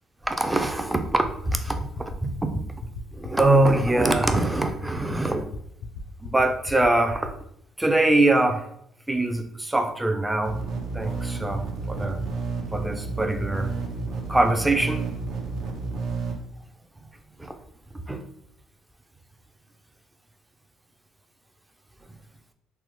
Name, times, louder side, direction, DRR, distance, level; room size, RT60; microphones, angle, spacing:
voice 1, 0.2-2.5 3.1-5.4 6.2-7.3 7.8-8.7 9.1-10.6 10.9-12.2 12.7-13.7 14.3-15.0 17.4-17.5 18.1-18.2, right 2 dB, 10° right, 6 dB, 0.4 m, -23 dB
sound 1, 1.2-7.3, left 7 dB, 80° left, 0.4 m, -36 dB
sound 2, 10.4-16.3, right 3 dB, 70° right, 0.6 m, -31 dB
3.2 x 2.0 x 3.0 m, 0.71 s
supercardioid pair, 85°, 0 cm